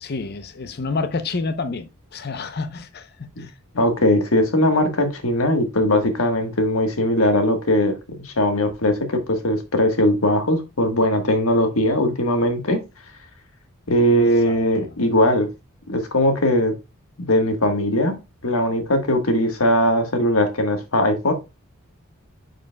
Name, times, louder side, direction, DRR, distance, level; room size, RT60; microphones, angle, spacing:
voice 1, 0.0-3.5 14.4-14.9, left 3 dB, 50° left, 0.7 m, -29 dB
voice 2, 3.7-7.9 8.2-12.8 13.9-15.5 15.9-16.7 17.3-21.3, left 1 dB, 75° left, 1.4 m, -20 dB
9.5 x 5.0 x 2.2 m
head